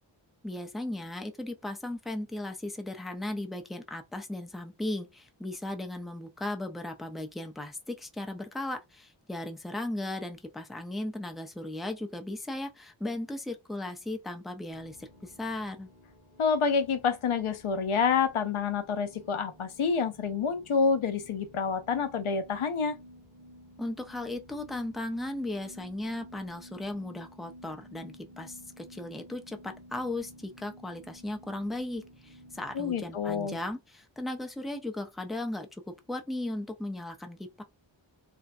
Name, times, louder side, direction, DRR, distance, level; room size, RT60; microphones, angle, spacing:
voice 1, 0.4-15.9 23.8-37.6, left 1 dB, ahead, 0.4 m, -36 dB
sound 1, 14.7-33.7, equal, 40° right, 1.1 m, -53 dB
voice 2, 16.4-23.0 32.7-33.6, left 5 dB, 85° left, 0.6 m, -28 dB
2.6 x 2.1 x 2.4 m
wide cardioid pair, 45°, 48 cm